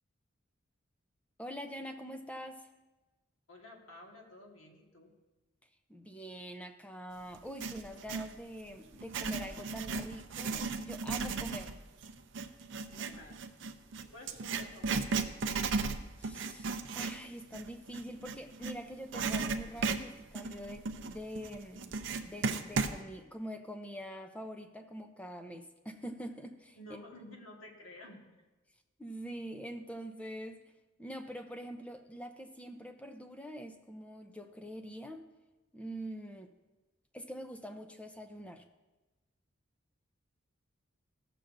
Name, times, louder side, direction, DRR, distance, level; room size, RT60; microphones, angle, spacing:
voice 1, 1.4-2.7 5.9-11.8 16.2-26.8 29.0-30.7 31.0-35.3 35.7-36.5 37.1-38.7, equal, 5° left, 6 dB, 0.5 m, -44 dB
voice 2, 3.5-5.1 12.9-13.4 14.0-15.3 26.8-28.3, left 1 dB, 85° left, 0 dB, 1.6 m, -52 dB
Writing, 7.3-8.3 8.9-18.8 19.1-23.0, right 4 dB, 60° right, 0.5 m, -35 dB
15.0 x 6.8 x 2.6 m, 1.2 s
head